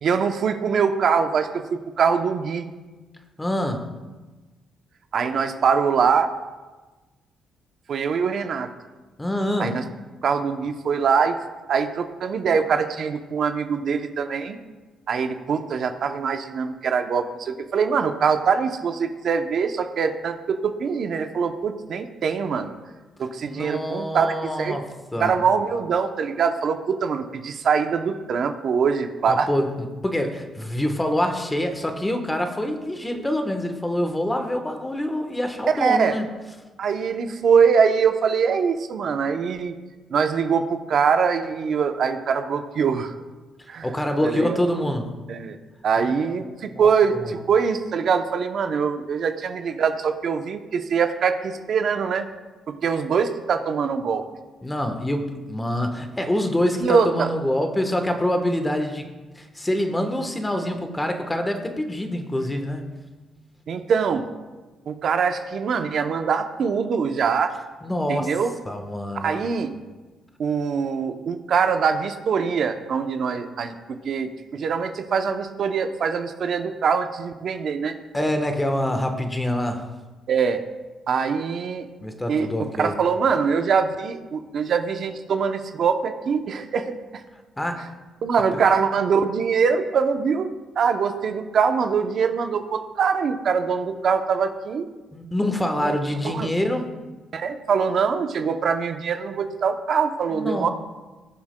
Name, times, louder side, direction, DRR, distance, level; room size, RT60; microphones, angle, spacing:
voice 1, 0.0-2.7 5.1-6.3 7.9-8.7 9.6-9.9 10.2-11.4 11.7-14.6 15.1-22.7 23.2-24.8 25.2-29.5 35.7-36.1 36.8-39.8 40.1-43.1 43.7-43.9 44.2-44.6 45.3-45.6 45.8-52.3 52.7-54.2 56.8-57.3 63.7-64.3 64.9-67.5 68.1-68.5 69.1-69.7 70.4-73.7 74.0-77.9 80.3-80.6 81.1-81.9 82.3-82.5 82.8-87.2 88.2-90.5 90.8-94.9 95.8-95.9 96.3-96.5 97.3-100.7, right 6 dB, 60° right, 7 dB, 0.6 m, -23 dB
voice 2, 3.4-3.8 9.2-9.8 23.4-24.8 25.1-25.3 29.3-36.3 43.8-45.1 46.0-46.3 46.7-47.3 54.6-59.0 59.3-62.8 67.8-68.3 68.6-69.4 78.1-79.9 82.0-83.0 87.6-87.9 88.5-88.6 95.1-96.9 100.3-100.7, left 1 dB, 15° left, 6 dB, 1.1 m, -26 dB
18.0 x 7.1 x 2.2 m, 1.2 s
cardioid pair, 90°, 0 cm